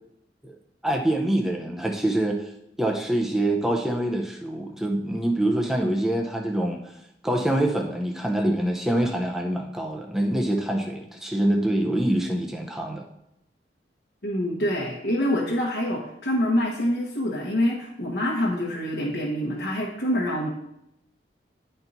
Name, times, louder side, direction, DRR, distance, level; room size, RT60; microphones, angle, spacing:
voice 1, 0.8-2.4 2.8-6.8 7.2-13.0, right 1 dB, 5° right, 1 dB, 0.6 m, -25 dB
voice 2, 14.2-20.5, left 1 dB, 65° left, -4 dB, 1.1 m, -26 dB
10.0 x 4.4 x 4.0 m, 0.81 s
head